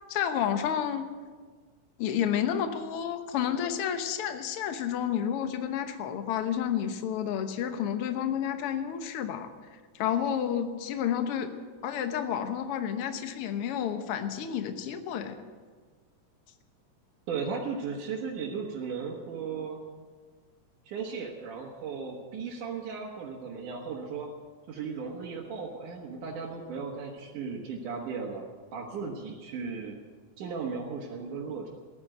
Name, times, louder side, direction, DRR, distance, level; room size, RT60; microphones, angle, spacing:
voice 1, 0.1-1.1 2.0-9.5 9.9-11.5 11.8-15.4, left 9 dB, 60° left, 8 dB, 1.7 m, -30 dB
voice 2, 17.3-19.8 20.9-24.3 24.7-28.4 28.7-29.9 30.4-31.7, right 5 dB, 90° right, -3 dB, 3.0 m, -36 dB
15.0 x 11.0 x 7.8 m, 1.5 s
omnidirectional pair, 3.5 m